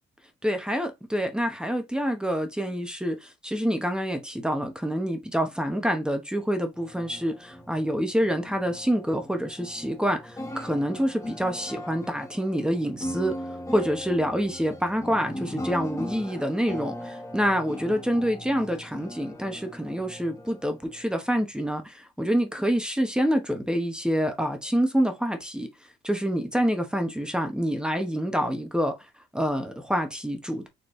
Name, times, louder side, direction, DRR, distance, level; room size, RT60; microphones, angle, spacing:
voice 1, 0.4-13.4 13.7-25.7 26.0-29.0 29.3-30.7, equal, 5° right, 0.9 m, -27 dB
sound 1, 6.7-21.4, left 1 dB, 15° left, 1.1 m, -39 dB
4.3 x 3.2 x 3.1 m
cardioid pair, 90°, 20 cm